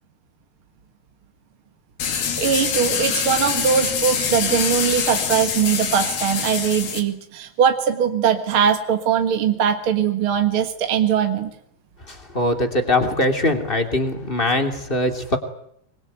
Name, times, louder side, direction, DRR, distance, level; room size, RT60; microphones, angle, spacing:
sound 1, 2.0-7.0, left 7 dB, 90° left, 4.5 m, -24 dB
voice 1, 2.4-11.5, right 8 dB, 50° right, 6 dB, 1.9 m, -21 dB
voice 2, 12.1-15.4, left 1 dB, 15° left, 6 dB, 2.6 m, -22 dB
25.0 x 22.5 x 9.3 m, 0.70 s
omnidirectional pair, 4.1 m